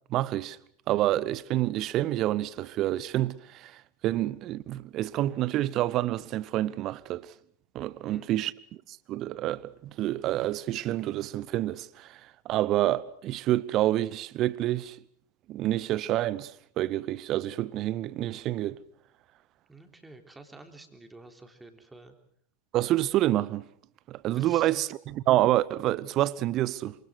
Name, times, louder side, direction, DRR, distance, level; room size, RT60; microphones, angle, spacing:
voice 1, 0.1-0.6 0.9-7.3 7.7-8.5 8.9-12.2 12.4-15.0 15.5-18.8 22.7-23.6 24.1-26.9, right 14 dB, 35° right, 1.0 m, -28 dB
voice 2, 8.0-8.3 19.7-22.2 24.3-24.8, right 2 dB, 10° right, 3.6 m, -50 dB
28.0 x 26.5 x 6.4 m
figure-of-eight pair, 90°, 0 cm